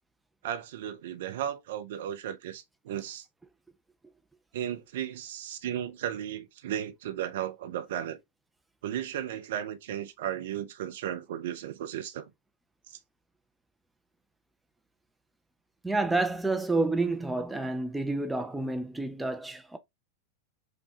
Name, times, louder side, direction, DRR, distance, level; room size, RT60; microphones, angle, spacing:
voice 1, 0.4-3.3 4.5-8.2 8.8-12.3 12.9-13.0, right 10 dB, 55° right, 0.5 m, -35 dB
voice 2, 15.8-19.8, right 2 dB, 5° right, 0.5 m, -29 dB
4.9 x 2.3 x 2.7 m
figure-of-eight pair, 90°, 0 cm